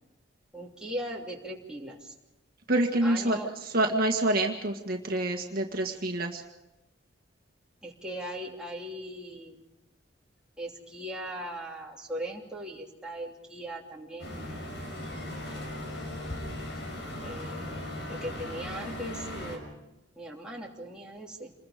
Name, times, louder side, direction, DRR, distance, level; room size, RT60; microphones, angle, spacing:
voice 1, 0.5-2.1 3.0-3.5 7.8-9.6 10.6-14.6 15.2-15.9 17.2-19.6 20.1-21.5, equal, 5° right, -3 dB, 3.0 m, -39 dB
voice 2, 2.7-3.4 3.7-6.4, right 1 dB, 55° right, 2 dB, 1.8 m, -27 dB
sound 1, 14.2-19.6, left 1 dB, 65° left, 5.5 m, -38 dB
28.0 x 21.5 x 5.1 m, 0.97 s
head